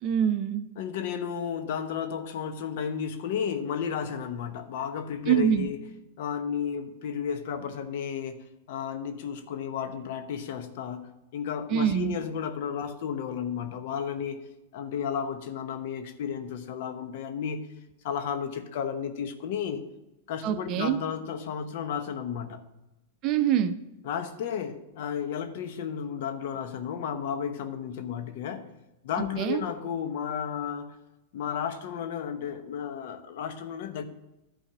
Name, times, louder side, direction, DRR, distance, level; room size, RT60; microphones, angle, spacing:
voice 1, 0.0-0.6 5.3-5.7 11.7-12.2 20.4-21.0 23.2-23.7 29.4-29.6, right 9 dB, 40° right, 10 dB, 0.6 m, -25 dB
voice 2, 0.8-5.8 6.2-14.5 14.7-17.7 18.0-19.8 20.3-22.7 24.0-28.7 29.0-31.0 31.3-34.0, left 7 dB, 60° left, 8 dB, 1.0 m, -33 dB
11.0 x 4.2 x 6.0 m, 0.97 s
hypercardioid pair, 125°, 0 cm